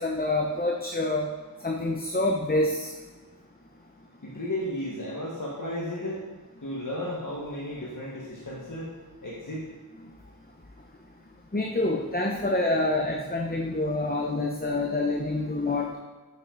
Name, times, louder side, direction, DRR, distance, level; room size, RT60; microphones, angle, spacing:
voice 1, 0.0-1.3 1.6-2.9 11.5-15.9, left 2 dB, 25° left, 1 dB, 0.9 m, -27 dB
voice 2, 4.2-6.2 6.6-8.9 9.2-9.6, left 1 dB, 60° left, -5 dB, 1.8 m, -34 dB
9.8 x 8.6 x 4.1 m, 1.3 s
wide cardioid pair, 50°, 36 cm